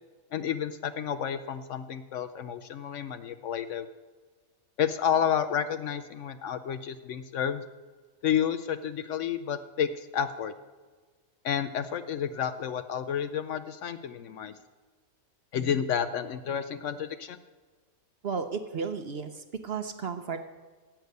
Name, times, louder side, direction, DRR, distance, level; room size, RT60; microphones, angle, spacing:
voice 1, 0.3-3.9 4.8-7.6 8.2-10.5 11.4-14.5 15.5-17.4, left 8 dB, 65° left, 11 dB, 0.8 m, -30 dB
voice 2, 18.2-20.4, right 5 dB, 55° right, 8 dB, 0.8 m, -33 dB
10.5 x 8.0 x 8.0 m, 1.4 s
omnidirectional pair, 1.5 m